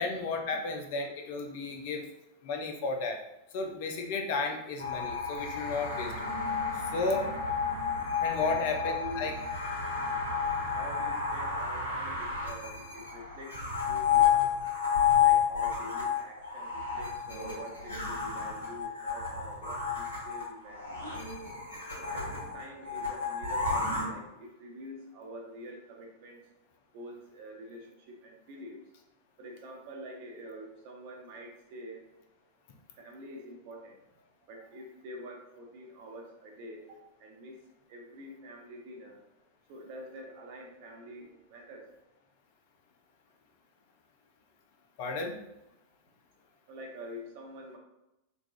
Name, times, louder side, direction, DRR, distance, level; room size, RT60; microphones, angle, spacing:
voice 1, 0.0-2.1 2.4-3.2 3.5-6.3 6.9-7.3 8.2-9.3 45.0-45.4, left 3 dB, 50° left, 4 dB, 0.5 m, -33 dB
sound 1, 4.8-24.0, left 6 dB, 75° left, 1.1 m, -31 dB
voice 2, 9.0-9.3 10.5-13.5 13.9-14.5 15.2-21.0 22.0-26.4 26.9-28.8 29.4-32.0 33.0-33.9 34.5-37.6 37.9-39.2 39.7-41.8 46.7-47.8, equal, 45° right, 1 dB, 0.8 m, -46 dB
4.7 x 2.3 x 2.4 m, 0.91 s
figure-of-eight pair, 90°, 0 cm